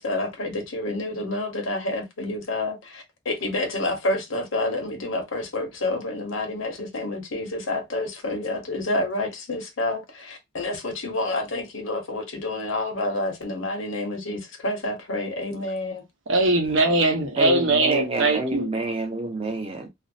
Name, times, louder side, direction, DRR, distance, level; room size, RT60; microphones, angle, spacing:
voice 1, 0.0-16.0, left 2 dB, 90° left, 0.9 m, -29 dB
voice 2, 16.3-18.7, right 2 dB, 75° right, 0.8 m, -21 dB
voice 3, 17.4-19.9, right 2 dB, 30° right, 0.7 m, -28 dB
2.5 x 2.0 x 2.5 m
head